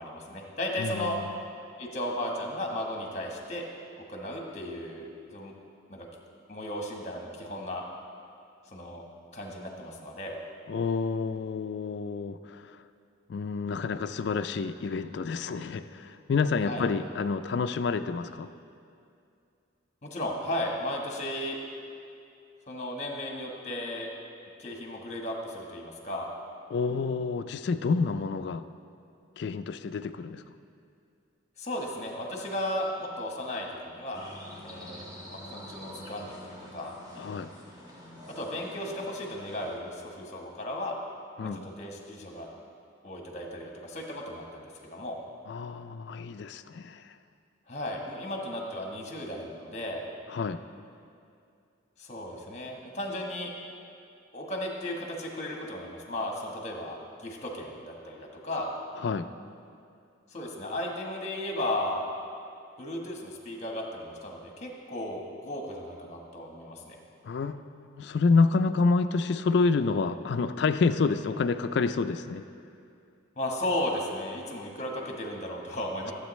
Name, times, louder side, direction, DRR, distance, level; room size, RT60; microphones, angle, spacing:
voice 1, 0.0-1.2 1.8-3.6 4.1-5.5 5.9-6.1 6.5-7.8 8.7-9.0 9.3-10.4 16.6-16.9 20.0-21.6 22.7-24.1 24.6-26.3 31.6-34.2 34.6-36.9 38.3-40.9 41.6-42.5 43.0-45.2 47.7-50.0 52.0-53.5 54.3-58.7 60.3-62.1 62.8-67.0 73.4-76.1, left 1 dB, 35° left, 0 dB, 1.2 m, -35 dB
voice 2, 0.8-1.3 10.7-12.8 13.3-18.5 26.7-28.6 29.4-30.4 37.2-37.5 41.4-41.7 45.5-47.1 50.3-50.6 59.0-59.3 67.2-72.4, left 4 dB, 55° left, 10 dB, 0.3 m, -28 dB
sound 1, 34.1-39.8, equal, 20° right, 1.3 m, -46 dB
15.0 x 8.1 x 3.1 m, 2.5 s
head